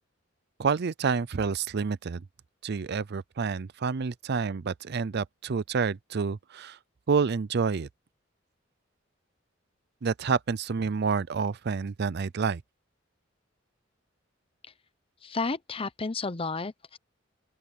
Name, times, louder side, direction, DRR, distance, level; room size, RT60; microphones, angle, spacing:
voice 1, 0.6-2.2 2.6-6.8 7.1-7.9 10.0-12.6, right 5 dB, 60° right, 0.5 m, -28 dB
voice 2, 15.2-17.0, left 4 dB, 30° left, 0.7 m, -32 dB
open air
head